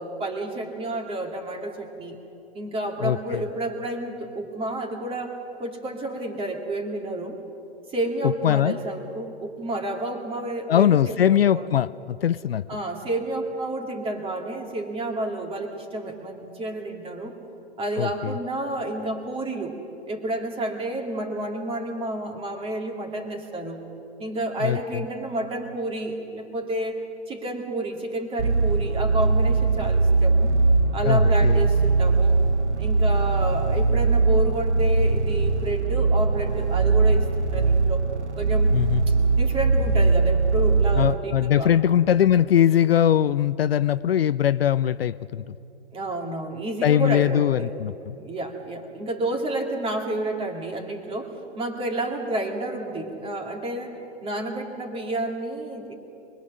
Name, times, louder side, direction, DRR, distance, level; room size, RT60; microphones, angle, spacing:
voice 1, 0.0-2.2 2.5-7.4 7.9-11.7 12.7-17.3 17.8-19.7 20.1-23.8 24.2-27.0 27.3-30.5 30.9-32.4 32.8-38.0 38.4-38.7 39.1-42.0 45.9-47.7 48.2-53.9 54.2-55.9, right 1 dB, 15° right, 3 dB, 2.7 m, -30 dB
voice 2, 3.0-3.4 8.4-8.8 10.7-12.6 18.0-18.3 24.6-24.8 31.0-31.6 38.7-39.0 41.0-45.6 46.8-48.2, left 10 dB, 60° left, 15 dB, 0.6 m, -21 dB
sound 1, 28.4-41.1, right 3 dB, 85° right, 0.9 m, -21 dB
25.0 x 22.0 x 6.3 m, 2.8 s
figure-of-eight pair, 120°, 34 cm